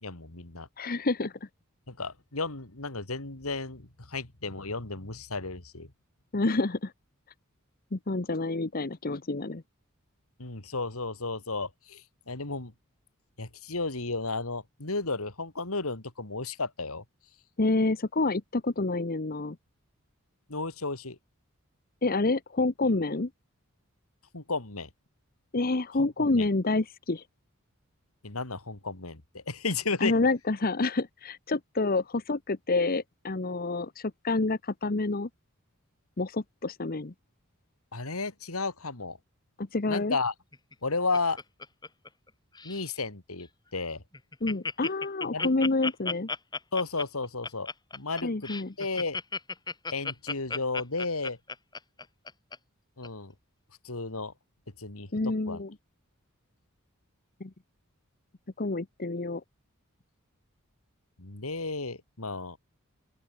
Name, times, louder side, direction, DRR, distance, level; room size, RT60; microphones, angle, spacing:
voice 1, 0.0-0.7 1.9-5.9 10.4-12.7 13.4-17.0 20.5-21.2 24.3-24.9 26.0-26.1 26.3-26.5 28.2-30.1 37.9-39.2 39.9-40.3 40.8-41.4 42.6-44.0 45.3-45.5 46.7-48.5 48.8-49.2 49.9-51.4 53.0-53.3 53.8-54.3 54.8-55.1 55.5-55.6 61.2-62.6, left 3 dB, 80° left, 3.0 m, -33 dB
voice 2, 0.8-1.3 6.3-6.9 7.9-9.6 17.6-19.6 22.0-23.3 25.5-27.2 30.0-35.3 36.2-37.1 39.6-40.2 44.4-46.3 48.2-48.7 55.1-55.7 57.4-57.5 58.6-59.4, left 3 dB, 45° left, 1.0 m, -28 dB
Laughter, 40.5-42.3 42.6-42.9 43.4-43.5 43.8-43.9 44.1-52.6 53.0-53.1, left 4 dB, 20° left, 3.6 m, -35 dB
open air
head